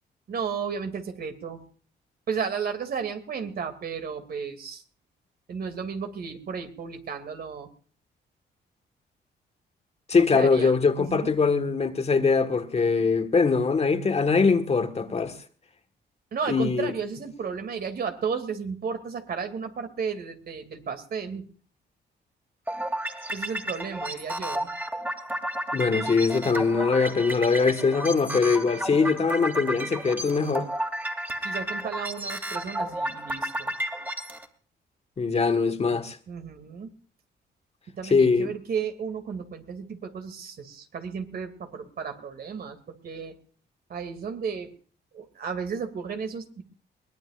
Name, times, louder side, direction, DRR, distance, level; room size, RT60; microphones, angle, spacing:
voice 1, 0.3-1.6 2.3-4.8 5.5-7.7 10.1-10.7 11.0-11.3 16.3-21.5 23.3-24.7 31.4-33.7 36.3-36.9 37.9-43.3 43.9-44.7 45.1-46.6, right 6 dB, 55° right, 2.6 m, -33 dB
voice 2, 10.1-15.3 16.5-16.9 25.7-30.7 35.2-36.2 38.1-38.5, left 4 dB, 35° left, 1.6 m, -22 dB
sound 1, 22.7-34.4, right 1 dB, 10° right, 2.9 m, -32 dB
23.0 x 18.0 x 2.5 m
cardioid pair, 95°, 19 cm